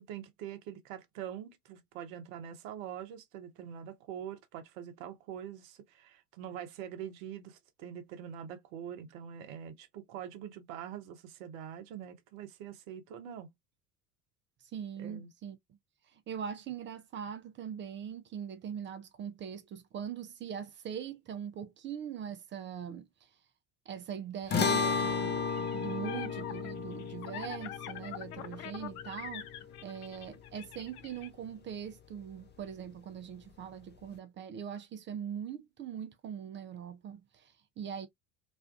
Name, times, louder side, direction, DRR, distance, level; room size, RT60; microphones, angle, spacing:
voice 1, 0.0-13.5 15.0-15.3, right 9 dB, 65° right, 0.7 m, -44 dB
voice 2, 14.6-15.6 16.1-23.3 23.9-29.5 29.8-38.1, right 8 dB, 30° right, 0.4 m, -41 dB
sound 1, 24.5-31.0, left 5 dB, 25° left, 0.6 m, -34 dB
sound 2, 25.5-31.3, left 11 dB, 75° left, 0.5 m, -45 dB
2.5 x 2.3 x 2.3 m
hypercardioid pair, 65°, 44 cm